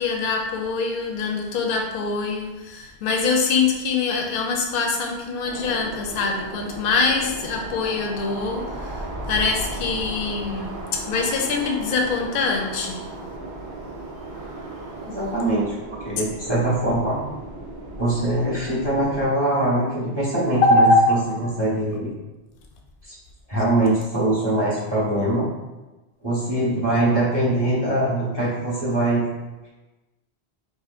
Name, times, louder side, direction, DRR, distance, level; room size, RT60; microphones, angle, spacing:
voice 1, 0.0-13.1 20.6-21.2, left 3 dB, 65° left, 1 dB, 0.7 m, -23 dB
sound 1, 5.4-19.3, right 2 dB, 80° right, 1.1 m, -36 dB
voice 2, 15.0-15.7 16.0-17.2 18.0-20.9 21.4-22.1 23.0-23.2 23.5-25.5 26.2-29.2, right 1 dB, 25° right, -8 dB, 0.9 m, -22 dB
4.1 x 2.8 x 2.5 m, 1.1 s
omnidirectional pair, 1.1 m